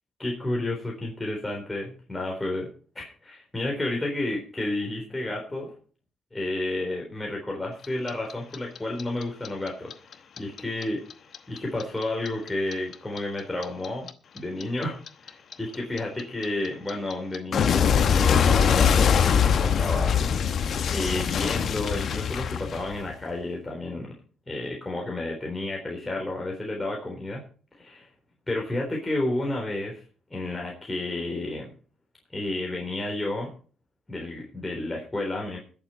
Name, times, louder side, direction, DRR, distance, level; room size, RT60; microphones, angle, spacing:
voice 1, 0.2-2.7 3.0-5.7 6.3-11.0 11.5-14.1 14.3-20.4 20.9-24.1 24.5-27.4 27.8-28.1 28.5-30.0 30.3-31.7 32.3-33.5 34.1-35.6, left 2 dB, 15° left, -1 dB, 3.9 m, -31 dB
Clock, 7.8-10.8 11.1-14.1 14.4-23.2, left 7 dB, 60° left, 1.0 m, -23 dB
21.0 x 7.4 x 4.4 m, 0.41 s
cardioid pair, 90°, 0 cm